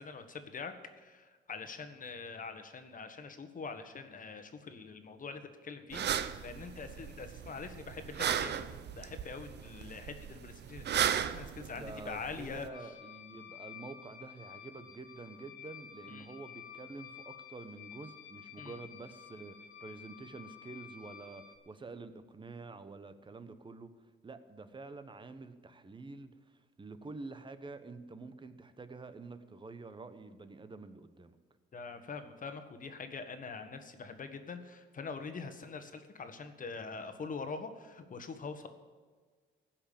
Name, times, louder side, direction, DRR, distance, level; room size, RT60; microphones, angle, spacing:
voice 1, 0.0-8.6 8.9-12.7 16.1-16.3 18.6-18.8 31.7-38.7, left 4 dB, 40° left, 7 dB, 1.5 m, -44 dB
sound 1, 5.9-12.7, right 9 dB, 60° right, 0.7 m, -36 dB
voice 2, 11.7-23.9 24.2-31.3, right 3 dB, 25° right, 11 dB, 1.1 m, -48 dB
sound 2, 12.7-21.6, left 9 dB, 90° left, 1.4 m, -51 dB
15.5 x 5.9 x 8.7 m, 1.5 s
cardioid pair, 90°, 20 cm